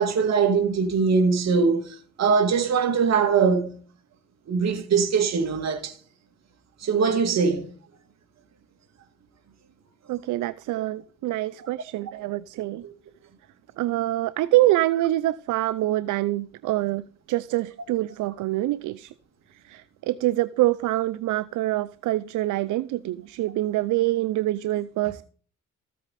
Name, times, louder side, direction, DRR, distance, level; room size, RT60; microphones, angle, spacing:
voice 1, 0.0-1.8 2.2-3.8 4.5-5.9 6.8-7.7, right 5 dB, 60° right, 2.3 m, -21 dB
voice 2, 10.1-12.8 13.8-19.1 19.7-25.2, right 16 dB, 80° right, 0.5 m, -25 dB
14.5 x 8.5 x 4.1 m
cardioid pair, 90°, 30 cm